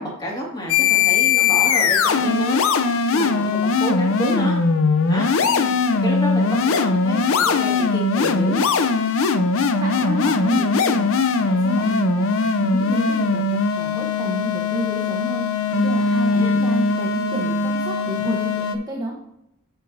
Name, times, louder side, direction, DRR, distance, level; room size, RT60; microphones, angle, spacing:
voice 1, 0.0-2.6 3.1-4.5 5.1-5.3 6.0-8.6 9.0-9.2 16.3-16.6, equal, 20° left, -3 dB, 2.1 m, -29 dB
sound 1, 0.7-18.8, left 4 dB, 60° left, 0.6 m, -20 dB
voice 2, 0.8-1.7 1.9-2.3 5.4-6.2 9.3-19.1, right 1 dB, 15° right, -2 dB, 1.0 m, -31 dB
8.9 x 6.6 x 2.7 m, 0.82 s
head